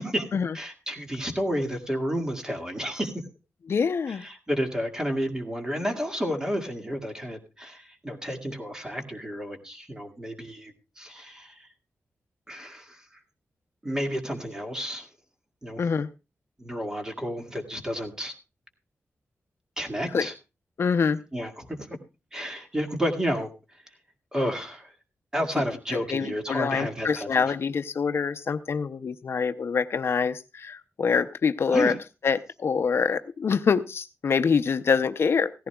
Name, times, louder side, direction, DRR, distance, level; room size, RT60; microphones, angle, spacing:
voice 1, 0.5-3.1 4.1-11.7 12.5-13.0 13.8-15.1 15.6-15.8 16.6-18.3 19.8-20.3 21.3-21.9 22.3-23.5 24.3-24.9 25.3-27.5 31.7-32.0, equal, 15° right, 4 dB, 2.0 m, -31 dB
voice 2, 3.7-4.2 15.8-16.1 20.1-20.3 20.8-21.2 26.1-31.9 32.2-35.5, left 5 dB, 55° left, 10 dB, 0.6 m, -25 dB
17.0 x 15.0 x 2.3 m, 0.28 s
wide cardioid pair, 150°, 5 cm